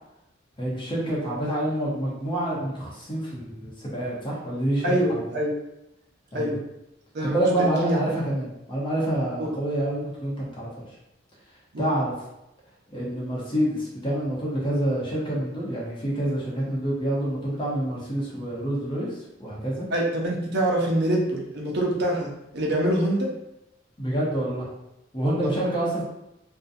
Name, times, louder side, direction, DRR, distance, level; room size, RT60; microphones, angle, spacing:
voice 1, 0.6-5.2 6.3-6.5 7.2-10.9 11.8-12.1 12.9-19.9 24.0-24.7 25.1-26.0, right 1 dB, 25° left, -5 dB, 0.8 m, -27 dB
voice 2, 4.8-5.5 6.3-6.6 7.1-8.0 9.4-9.5 11.7-11.9 19.9-23.3 25.4-25.5, right 1 dB, 60° right, -1 dB, 0.6 m, -25 dB
2.5 x 2.2 x 2.5 m, 0.88 s
head